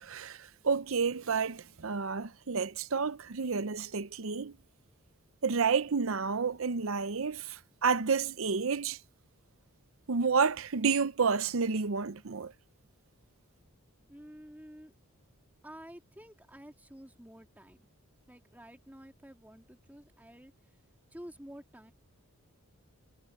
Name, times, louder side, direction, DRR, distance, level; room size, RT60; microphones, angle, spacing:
voice 1, 0.0-4.6 5.4-9.0 10.1-12.5, right 5 dB, 60° right, 0.7 m, -30 dB
voice 2, 14.1-14.9 15.6-17.9 18.3-20.5 21.1-21.9, equal, 10° right, 2.8 m, -50 dB
head